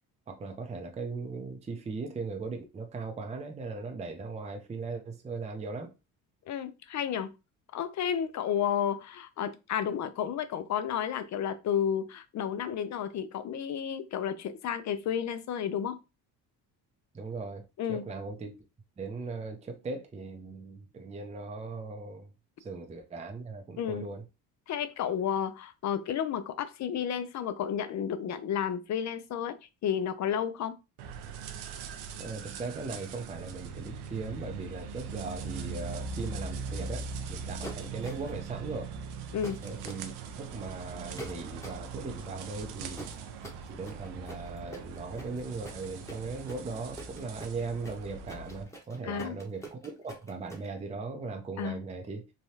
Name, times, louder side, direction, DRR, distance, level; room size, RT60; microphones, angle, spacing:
voice 1, 0.3-5.9 17.1-18.6 19.0-22.3 22.6-24.2 32.2-38.9 39.6-43.1 43.7-52.3, right 3 dB, 20° right, 0.5 m, -38 dB
voice 2, 6.5-7.3 7.7-16.0 17.8-18.0 23.8-24.1 24.7-29.6 29.8-30.8 39.3-39.6 49.0-49.4 51.6-51.8, left 8 dB, 50° left, 0.5 m, -32 dB
sound 1, 31.0-48.6, right 5 dB, 90° right, 0.6 m, -41 dB
sound 2, 37.6-38.4 39.4-40.0 41.2-41.9 42.9-50.7, right 1 dB, 10° left, 0.9 m, -45 dB
3.3 x 2.3 x 2.7 m
cardioid pair, 90°, 38 cm